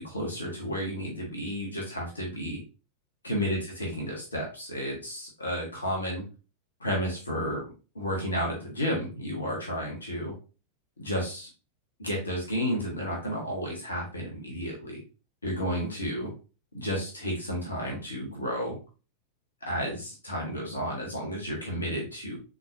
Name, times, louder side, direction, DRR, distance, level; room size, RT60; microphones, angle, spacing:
voice 1, 0.0-2.6 3.2-6.2 6.8-7.6 7.9-10.3 11.0-11.5 12.0-15.0 15.4-16.3 16.7-18.8 19.6-22.4, equal, 75° left, -1 dB, 1.4 m, -32 dB
3.9 x 3.7 x 2.6 m, 0.33 s
figure-of-eight pair, 90°, 0 cm